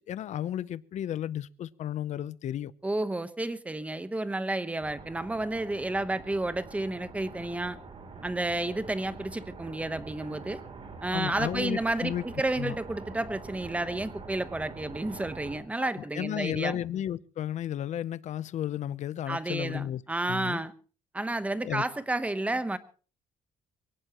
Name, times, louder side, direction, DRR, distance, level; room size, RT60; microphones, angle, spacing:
voice 1, 0.1-2.7 11.1-12.2 12.5-12.8 15.8-20.0 20.3-20.6 21.6-21.8, left 11 dB, 50° left, 0.7 m, -33 dB
voice 2, 2.8-7.8 8.2-10.6 11.0-16.8 19.3-20.7 21.1-22.8, right 2 dB, 10° right, 1.0 m, -31 dB
sound 1, 4.8-15.6, right 4 dB, 40° right, 3.2 m, -45 dB
23.0 x 18.0 x 3.0 m
cardioid pair, 145°, 15 cm